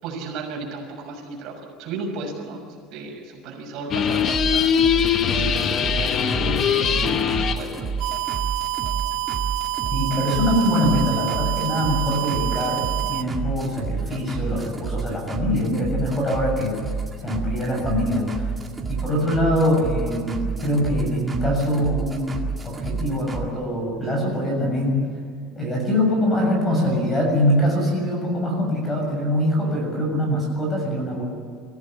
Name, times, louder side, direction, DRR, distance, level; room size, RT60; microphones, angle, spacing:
voice 1, 0.0-2.6 2.9-7.9, right 3 dB, 50° right, 0 dB, 6.3 m, -35 dB
sound 1, 3.9-7.7, left 8 dB, 35° left, 1.0 m, -21 dB
sound 2, 4.1-23.5, right 5 dB, 10° right, 2.0 m, -30 dB
sound 3, 8.0-13.2, right 26 dB, 80° right, 1.1 m, -27 dB
voice 2, 9.9-16.8 17.2-18.5 18.9-25.0 25.6-31.2, equal, 15° left, 1 dB, 7.1 m, -23 dB
26.0 x 16.0 x 8.7 m, 2.2 s
cardioid pair, 175°, 0 cm